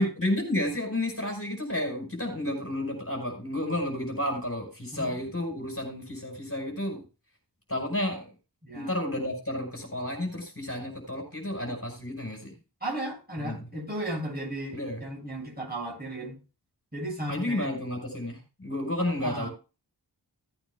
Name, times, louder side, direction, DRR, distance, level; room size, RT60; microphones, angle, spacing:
voice 1, 0.0-7.0 7.7-8.2 8.7-12.5 13.4-13.6 14.7-15.0 17.3-19.5, left 1 dB, 30° left, 5.2 m, -31 dB
voice 2, 8.6-8.9 12.8-16.4 16.9-17.7 19.2-19.5, right 1 dB, 20° right, 7.1 m, -35 dB
17.5 x 8.9 x 2.3 m
wide cardioid pair, 45°, 42 cm